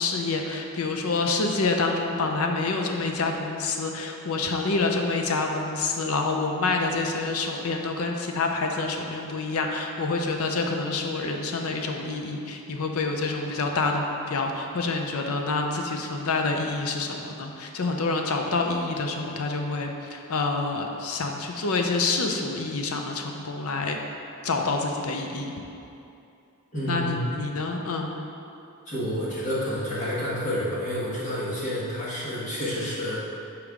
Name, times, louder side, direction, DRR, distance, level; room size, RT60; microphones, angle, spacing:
voice 1, 0.0-24.0 24.4-25.5 26.9-28.1, left 3 dB, 70° left, 3 dB, 0.6 m, -27 dB
voice 2, 26.7-27.3 28.9-33.2, equal, 35° left, -8 dB, 1.5 m, -29 dB
6.9 x 4.6 x 3.6 m, 2.7 s
head